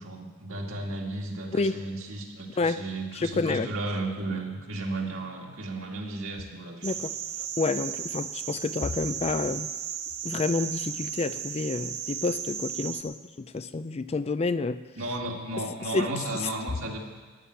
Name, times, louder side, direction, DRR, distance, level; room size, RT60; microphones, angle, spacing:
voice 1, 0.0-7.0 15.0-17.0, right 2 dB, 70° right, 0 dB, 2.1 m, -34 dB
voice 2, 3.1-3.7 6.8-7.1 7.6-9.7 10.2-14.8 15.9-16.4, left 3 dB, 30° left, 13 dB, 0.4 m, -29 dB
sound 1, 6.8-13.0, right 9 dB, 90° right, 1.2 m, -35 dB
12.5 x 7.6 x 9.8 m, 1.4 s
head